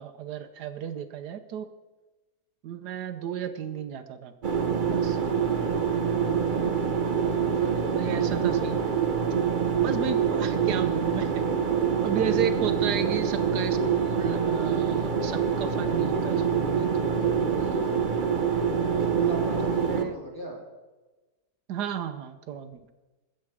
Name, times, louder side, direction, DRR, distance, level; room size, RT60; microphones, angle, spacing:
voice 1, 0.0-1.7 2.6-4.3 4.9-5.2 7.9-8.8 9.8-11.4 12.0-17.9 19.9-20.2 21.7-22.8, right 8 dB, 80° right, 9 dB, 1.3 m, -33 dB
sound 1, 4.4-20.0, right 6 dB, 40° right, 0.8 m, -25 dB
voice 2, 5.1-5.5 7.3-7.9 18.9-20.6, right 1 dB, 10° left, -2 dB, 3.2 m, -38 dB
21.0 x 7.8 x 4.8 m, 1.2 s
omnidirectional pair, 1.7 m